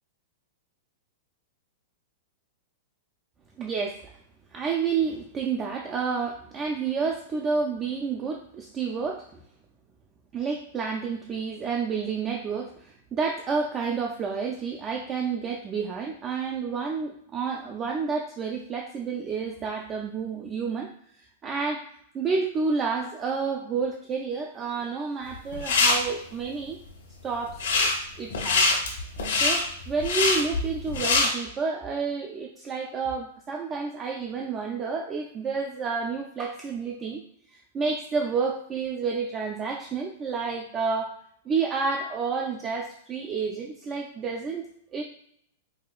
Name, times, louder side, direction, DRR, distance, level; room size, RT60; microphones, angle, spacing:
voice 1, 3.6-4.1 4.5-9.4 10.3-20.9 21.2-21.9 22.1-26.8 27.2-28.7 29.4-37.2 37.7-41.2 41.5-45.0, right 5 dB, 25° right, 1 dB, 0.3 m, -30 dB
sound 1, 25.3-25.9 27.5-28.0 28.3-31.3, left 4 dB, 85° left, 1.1 m, -23 dB
4.8 x 2.2 x 2.4 m, 0.68 s
hypercardioid pair, 135°, 0 cm